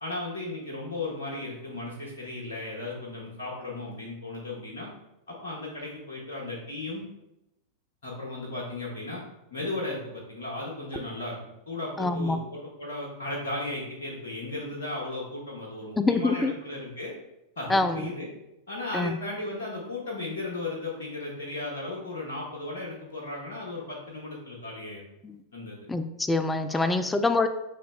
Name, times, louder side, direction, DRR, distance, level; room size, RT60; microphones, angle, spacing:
voice 1, 0.0-4.9 5.3-7.0 8.0-9.2 9.5-11.4 11.7-17.1 17.6-18.3 18.7-25.1 25.5-25.8 26.7-27.1, left 2 dB, 65° left, -3 dB, 1.0 m, -35 dB
voice 2, 12.0-12.4 16.0-16.5 17.7-18.1 18.9-19.2 25.2-25.3 25.9-27.5, left 3 dB, 10° left, 9 dB, 0.3 m, -25 dB
6.3 x 3.0 x 2.2 m, 0.90 s
figure-of-eight pair, 90°, 0 cm